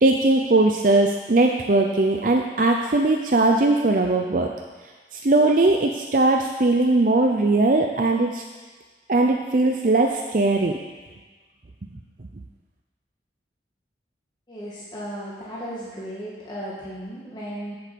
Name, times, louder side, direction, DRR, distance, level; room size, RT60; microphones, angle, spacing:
voice 1, 0.0-4.5 5.1-8.4 9.1-10.8, right 2 dB, 45° right, 2 dB, 0.6 m, -19 dB
voice 2, 14.5-17.8, equal, 25° left, -8 dB, 1.6 m, -35 dB
7.9 x 7.8 x 6.9 m, 1.4 s
head